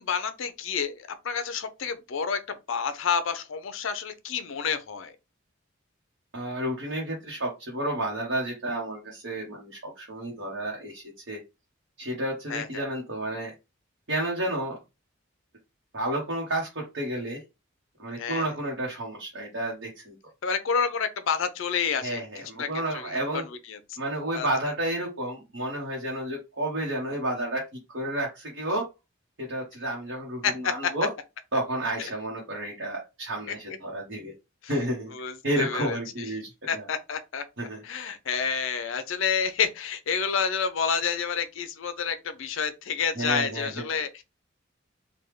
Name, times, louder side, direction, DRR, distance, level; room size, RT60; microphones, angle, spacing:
voice 1, 0.0-2.4 2.7-5.1 12.5-12.9 18.2-18.5 20.4-22.2 22.6-23.8 24.3-24.5 30.4-30.9 33.5-33.6 35.1-36.3 36.7-37.4 37.8-44.2, left 6 dB, 70° left, 0.5 m, -29 dB
voice 2, 6.3-11.4 12.0-13.5 14.1-14.8 15.9-17.4 18.0-20.1 22.0-23.4 24.0-27.6 27.9-28.9 29.4-31.1 31.5-34.3 34.7-35.1 35.4-36.9 37.6-37.8 43.1-44.0, right 1 dB, 60° right, 1.0 m, -31 dB
3.4 x 2.3 x 3.1 m
head